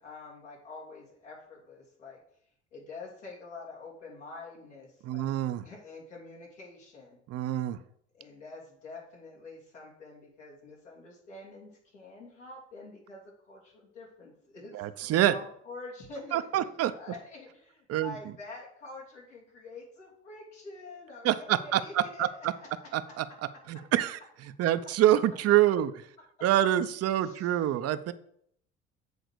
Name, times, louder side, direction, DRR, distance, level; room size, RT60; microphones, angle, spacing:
voice 1, 0.0-2.2 2.7-5.3 5.6-7.2 8.1-22.9 27.1-27.8, left 3 dB, 80° left, -3 dB, 2.8 m, -47 dB
voice 2, 5.0-5.6 7.3-7.8 14.7-15.3 16.3-16.9 17.9-18.1 21.2-22.5 22.9-23.3 23.7-24.2 24.6-25.9 26.4-28.1, right 12 dB, 45° right, 12 dB, 0.6 m, -26 dB
7.9 x 3.9 x 6.7 m, 0.68 s
figure-of-eight pair, 60°, 36 cm